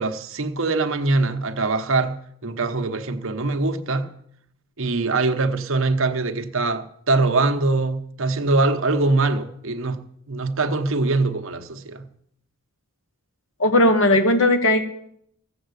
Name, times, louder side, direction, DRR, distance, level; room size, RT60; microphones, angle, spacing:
voice 1, 0.0-4.1 4.8-10.0 10.3-12.1, right 3 dB, 65° right, 1.1 m, -23 dB
voice 2, 13.6-14.8, left 1 dB, 60° left, 1.3 m, -17 dB
15.5 x 7.5 x 8.3 m
head